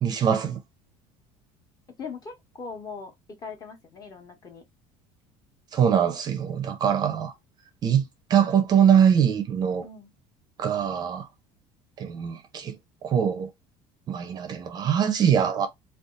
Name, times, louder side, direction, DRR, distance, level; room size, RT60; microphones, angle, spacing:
voice 1, 0.0-0.6 5.7-7.3 7.8-9.9 10.6-11.3 12.0-12.8 13.0-13.5 14.1-15.7, right 8 dB, 30° right, 0.5 m, -23 dB
voice 2, 2.0-4.6 9.8-10.1, left 5 dB, 30° left, 0.9 m, -40 dB
2.6 x 2.3 x 3.6 m
cardioid pair, 155°, 13 cm